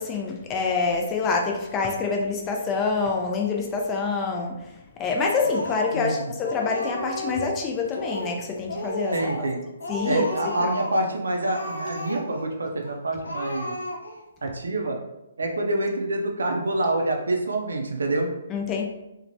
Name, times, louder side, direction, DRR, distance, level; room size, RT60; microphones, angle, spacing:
voice 1, 0.0-9.5 9.9-10.2 10.6-10.7 18.5-18.8, left 4 dB, 20° left, 1 dB, 0.3 m, -26 dB
Speech, 5.2-6.1 6.4-7.6 7.9-8.4 8.7-9.5 9.8-11.0 11.4-12.5 12.8-12.9 13.2-14.2, left 1 dB, 85° left, 0.5 m, -33 dB
voice 2, 5.9-6.2 9.1-9.6 10.0-13.7 14.4-15.0 15.4-18.3, right 2 dB, 75° right, 2 dB, 0.4 m, -26 dB
3.0 x 2.1 x 2.6 m, 0.95 s
figure-of-eight pair, 135°, 0 cm